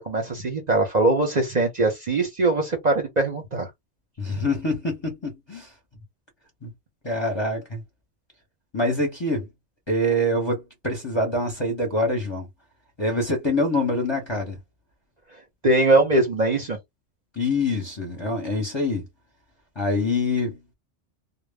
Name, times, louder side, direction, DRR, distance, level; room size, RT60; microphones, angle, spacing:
voice 1, 0.0-3.7 15.6-16.8, right 2 dB, 45° right, 0.7 m, -21 dB
voice 2, 4.2-5.7 6.6-6.7 7.0-7.8 8.7-9.5 9.9-12.5 13.0-14.6 17.3-19.1 19.8-20.6, left 1 dB, 25° left, 0.7 m, -25 dB
2.1 x 2.0 x 3.4 m
omnidirectional pair, 1.2 m